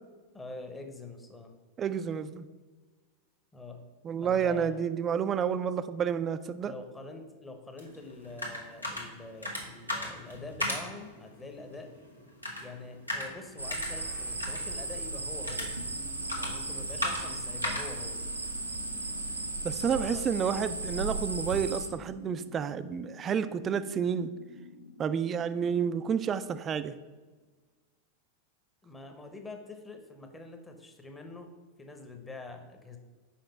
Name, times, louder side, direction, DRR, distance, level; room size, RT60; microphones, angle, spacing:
voice 1, 0.3-1.5 3.5-3.8 4.2-4.7 6.6-11.9 12.6-15.8 16.4-18.2 19.9-20.2 28.8-31.5 31.8-33.0, left 3 dB, 10° left, 5 dB, 0.8 m, -45 dB
voice 2, 1.8-2.5 4.0-6.7 19.6-24.3 25.0-26.9, right 7 dB, 25° right, 12 dB, 0.4 m, -30 dB
sound 1, 7.8-19.4, left 1 dB, 90° left, 1.2 m, -39 dB
sound 2, 13.3-27.2, left 3 dB, 40° left, 0.9 m, -51 dB
sound 3, 13.6-21.9, right 2 dB, 85° right, 0.6 m, -36 dB
5.9 x 5.0 x 4.3 m, 1.3 s
figure-of-eight pair, 90°, 0 cm